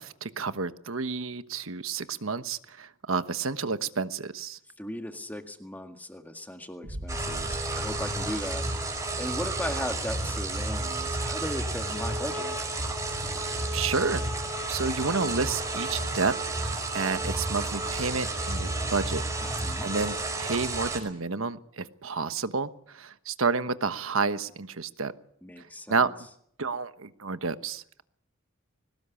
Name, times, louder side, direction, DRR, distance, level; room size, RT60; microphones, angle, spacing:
voice 1, 0.0-4.6 13.4-14.2 14.7-16.3 16.9-19.2 19.8-25.1 25.9-26.1 26.6-28.0, right 4 dB, 80° right, 12 dB, 1.2 m, -30 dB
voice 2, 4.8-8.7 9.2-12.6 19.4-19.9 25.4-26.1, left 1 dB, 10° left, 6 dB, 1.9 m, -37 dB
sound 1, 6.8-9.8, right 1 dB, 65° right, 1.7 m, -43 dB
sound 2, 7.1-21.0, right 2 dB, 15° right, 5.2 m, -31 dB
22.0 x 19.0 x 8.4 m, 0.69 s
head